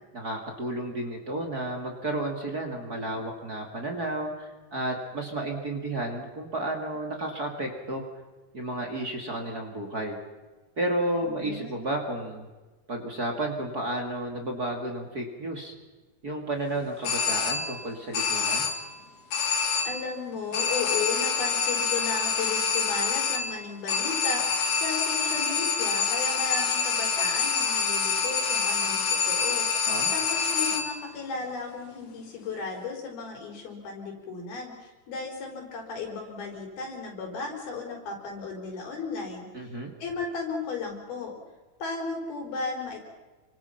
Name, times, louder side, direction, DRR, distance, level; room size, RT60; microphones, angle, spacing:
voice 1, 0.1-8.0 8.5-10.2 10.8-12.5 12.9-15.7 16.2-18.7 29.9-30.1 39.5-39.9, right 1 dB, 30° right, 2 dB, 2.4 m, -32 dB
voice 2, 11.2-11.9 19.8-29.7 30.1-39.7 40.0-41.3 41.8-43.0, left 4 dB, 90° left, 1 dB, 6.4 m, -35 dB
sound 1, 17.0-17.9 18.1-19.0 19.3-20.1 20.5-31.1, left 5 dB, 50° left, 2.4 m, -27 dB
29.0 x 24.5 x 5.9 m, 1.2 s
omnidirectional pair, 4.2 m